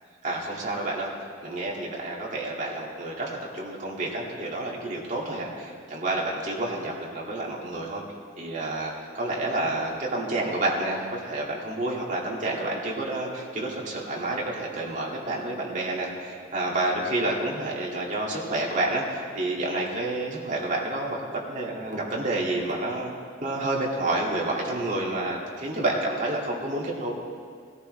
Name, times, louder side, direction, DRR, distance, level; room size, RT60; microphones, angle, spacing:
voice 1, 0.2-1.1 1.4-8.0 8.4-23.1 23.4-27.2, right 2 dB, 40° right, -3 dB, 2.2 m, -29 dB
18.5 x 13.5 x 3.3 m, 2.1 s
head